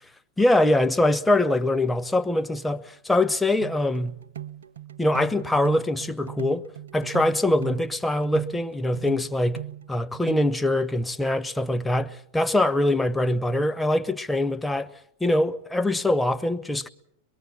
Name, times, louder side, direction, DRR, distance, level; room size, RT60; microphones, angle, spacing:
voice 1, 0.4-4.2 5.0-6.7 6.9-9.6 9.9-14.9 15.2-16.9, left 1 dB, 5° left, 0.9 m, -23 dB
sound 1, 3.6-10.5, right 11 dB, 65° right, 0.8 m, -39 dB
24.0 x 21.5 x 7.1 m
figure-of-eight pair, 90°, 0 cm